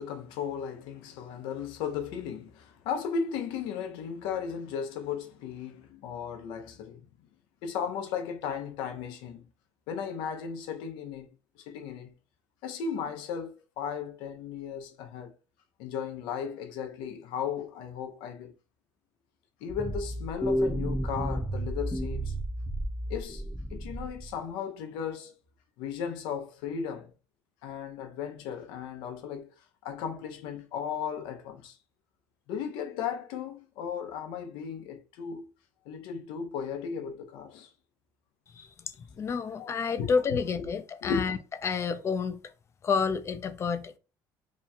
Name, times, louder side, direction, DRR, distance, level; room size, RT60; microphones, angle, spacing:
voice 1, 0.0-7.0 7.6-9.4 9.9-11.3 11.6-12.1 12.6-15.3 15.8-18.5 19.6-22.4 23.1-23.4 23.7-25.3 25.8-27.1 27.6-29.5 29.8-31.8 32.5-35.5 35.9-37.7 39.5-40.8 41.0-41.2, left 7 dB, 85° left, 0.8 m, -36 dB
sound 1, 19.7-24.4, right 1 dB, 5° right, 0.8 m, -32 dB
voice 2, 39.2-41.4 41.6-42.4 42.8-43.9, left 5 dB, 35° left, 0.5 m, -29 dB
3.0 x 2.3 x 4.2 m
cardioid pair, 105°, 8 cm